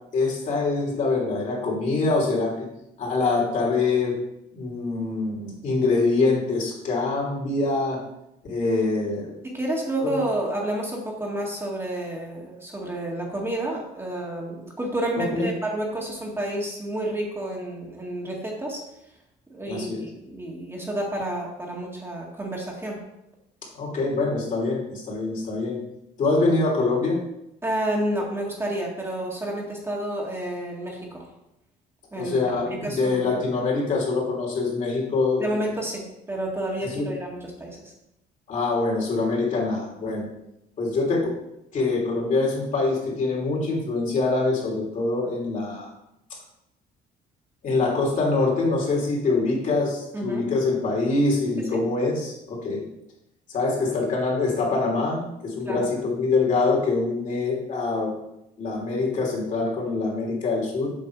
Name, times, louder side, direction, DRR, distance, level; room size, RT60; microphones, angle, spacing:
voice 1, 0.1-2.7 3.0-4.2 4.5-8.0 8.4-9.3 10.0-10.1 15.2-15.5 19.7-20.0 23.7-25.8 26.2-27.2 32.1-35.5 36.8-37.1 38.5-40.3 40.8-41.3 41.7-45.9 47.6-52.8 53.5-58.1 58.6-60.9, left 3 dB, 50° left, -2 dB, 3.2 m, -24 dB
voice 2, 9.4-18.8 19.5-23.0 27.6-31.2 32.1-32.4 32.8-33.3 35.4-37.9 50.1-50.5 51.7-51.8 55.7-55.9, right 1 dB, 15° right, -2 dB, 1.9 m, -30 dB
7.8 x 5.7 x 4.8 m, 0.85 s
cardioid pair, 110°, 17 cm